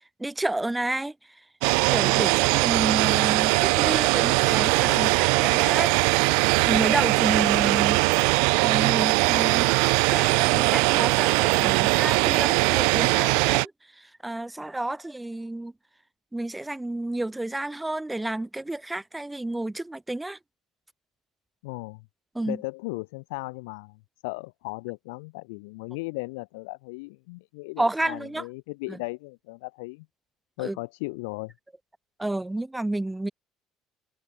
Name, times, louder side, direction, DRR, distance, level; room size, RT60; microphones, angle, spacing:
voice 1, 0.2-1.1 1.8-8.0 8.6-9.7 10.1-15.7 16.3-20.4 22.3-22.6 27.8-28.4 28.9-29.0 30.6-30.8 32.2-33.3, right 2 dB, 10° right, 3.9 m, -30 dB
sound 1, 1.6-13.7, right 38 dB, 75° right, 0.4 m, -21 dB
voice 2, 4.8-5.3 7.6-7.7 21.6-22.0 22.5-30.1 30.6-31.5, left 26 dB, 75° left, 0.9 m, -37 dB
hypercardioid pair, 60°, 0 cm